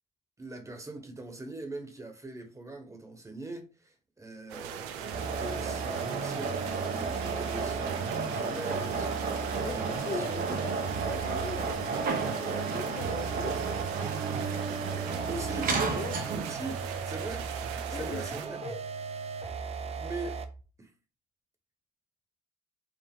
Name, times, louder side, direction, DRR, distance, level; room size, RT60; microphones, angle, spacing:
voice 1, 0.4-10.5 14.9-15.8 16.1-18.6 19.9-20.4 20.8-20.9, right 2 dB, 20° right, 1.3 m, -42 dB
sound 1, 4.5-18.5, right 9 dB, 85° right, 0.5 m, -41 dB
sound 2, 4.9-16.7, right 4 dB, 55° right, 1.1 m, -33 dB
sound 3, 5.1-20.6, right 5 dB, 40° right, 0.7 m, -37 dB
voice 2, 9.6-10.3 10.6-13.7 15.9-16.3 17.9-18.2 18.6-18.8, left 5 dB, 40° left, 0.7 m, -41 dB
4.9 x 2.4 x 3.7 m
supercardioid pair, 70°, 17 cm